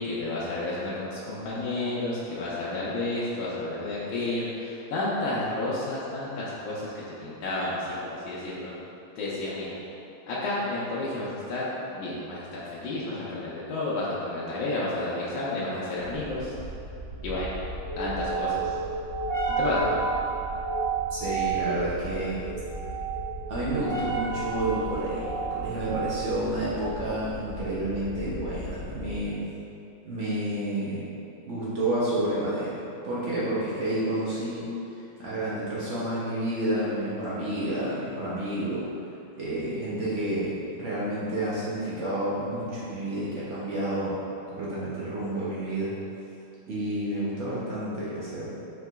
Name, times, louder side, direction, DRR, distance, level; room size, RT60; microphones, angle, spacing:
voice 1, 0.0-6.9 7.2-8.7 9.2-9.7 10.3-11.7 11.9-16.5 17.2-17.5 18.0-18.7 19.6-19.9, left 2 dB, 80° left, -8 dB, 1.4 m, -31 dB
sound 1, 16.0-29.4, right 4 dB, 40° right, 0.9 m, -32 dB
voice 2, 21.1-22.5 23.5-29.4 30.0-31.0 31.5-34.6 35.2-38.9 39.4-44.1 44.5-45.9 46.7-48.5, right 1 dB, 65° right, -9 dB, 0.7 m, -30 dB
4.8 x 3.7 x 2.2 m, 2.8 s
omnidirectional pair, 2.2 m